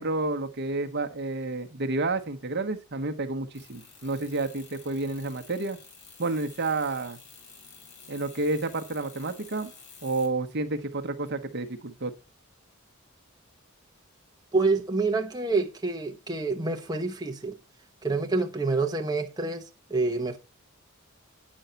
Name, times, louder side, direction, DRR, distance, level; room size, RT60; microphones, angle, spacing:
voice 1, 0.0-5.8 6.2-7.2 8.1-9.7 10.0-12.1, right 2 dB, 55° right, 1.0 m, -30 dB
sound 1, 3.5-10.3, left 5 dB, 55° left, 2.4 m, -51 dB
voice 2, 14.5-17.5 18.0-20.4, right 3 dB, 20° right, 0.9 m, -27 dB
9.2 x 6.3 x 5.6 m
head